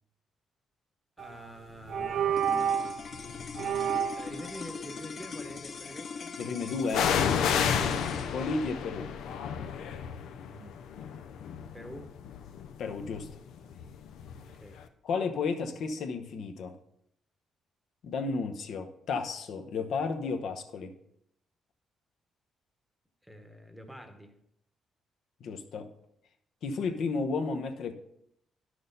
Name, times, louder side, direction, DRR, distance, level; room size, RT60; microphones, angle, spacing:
voice 1, 1.2-2.6 4.2-6.4 7.7-8.0 10.5-10.8 11.7-12.1 14.3-14.8 23.2-24.3, equal, ahead, 5 dB, 1.0 m, -46 dB
sound 1, 1.2-1.5 1.9-3.0 3.6-4.3, right 8 dB, 55° right, 0.5 m, -29 dB
sound 2, 1.9-2.3 3.0-4.0 6.9-14.5 14.8-14.9, left 7 dB, 90° left, 0.6 m, -32 dB
sound 3, 2.3-12.8, left 5 dB, 35° left, 0.4 m, -43 dB
voice 2, 6.4-7.1 8.3-9.1 12.8-13.3 15.0-16.8 18.0-20.9 25.4-25.9 26.6-27.9, left 4 dB, 65° left, 7 dB, 0.9 m, -32 dB
11.0 x 6.3 x 3.9 m, 0.75 s
cardioid pair, 150°, 0 cm